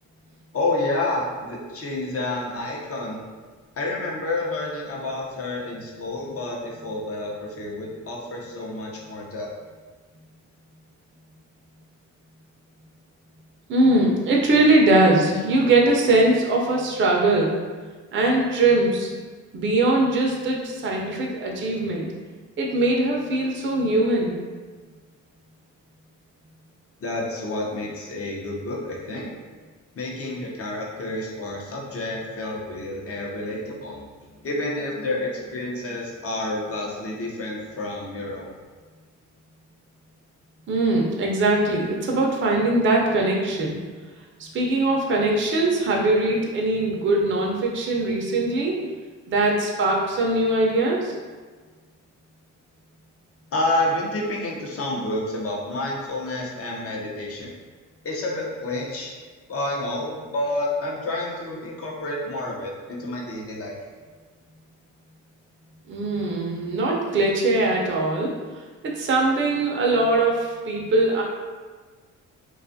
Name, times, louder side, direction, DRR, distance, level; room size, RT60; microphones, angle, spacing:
voice 1, 0.5-3.2 3.8-9.5 27.0-29.3 30.0-34.1 34.4-38.5 53.5-57.5 58.0-59.1 59.5-63.8, left 2 dB, 45° left, -2 dB, 0.7 m, -29 dB
voice 2, 13.7-17.6 18.1-19.1 19.5-22.1 22.6-24.4 40.7-43.8 44.4-48.8 49.3-51.1 65.9-68.3 68.8-71.2, right 2 dB, 35° right, -1 dB, 0.5 m, -21 dB
2.5 x 2.3 x 2.5 m, 1.4 s
cardioid pair, 85°, 33 cm